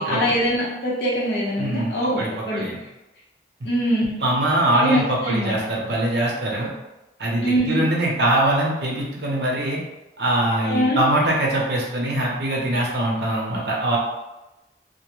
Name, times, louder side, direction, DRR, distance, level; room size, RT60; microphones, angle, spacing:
voice 1, 0.0-2.6 3.6-4.2 4.7-5.6 7.4-7.9 10.6-11.0, equal, 70° left, -5 dB, 0.8 m, -23 dB
voice 2, 1.6-2.8 4.2-6.7 7.2-9.8 10.2-14.0, right 1 dB, 70° right, -3 dB, 0.6 m, -22 dB
2.2 x 2.1 x 3.0 m, 0.99 s
head